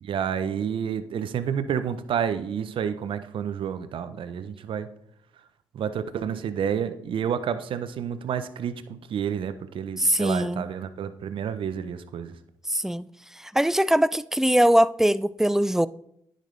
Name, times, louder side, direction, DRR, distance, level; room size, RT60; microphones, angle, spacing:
voice 1, 0.0-4.9 5.7-12.3, right 8 dB, 60° right, 0.6 m, -29 dB
voice 2, 10.0-10.7 12.7-13.1 13.5-15.9, right 1 dB, 5° right, 0.3 m, -21 dB
10.0 x 5.2 x 3.2 m
supercardioid pair, 55°, 10 cm